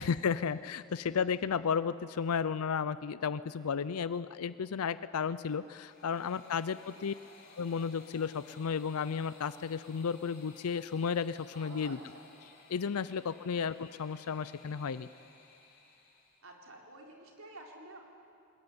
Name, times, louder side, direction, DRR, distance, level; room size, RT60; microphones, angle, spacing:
voice 1, 0.0-7.1 7.6-12.0 12.7-15.1, left 6 dB, 90° left, 15 dB, 0.5 m, -33 dB
sound 1, 5.5-16.5, left 3 dB, 45° left, 4.0 m, -58 dB
voice 2, 11.5-12.2 12.9-13.4 16.4-18.0, right 2 dB, 70° right, 0 dB, 3.8 m, -51 dB
21.0 x 21.0 x 9.6 m, 2.5 s
head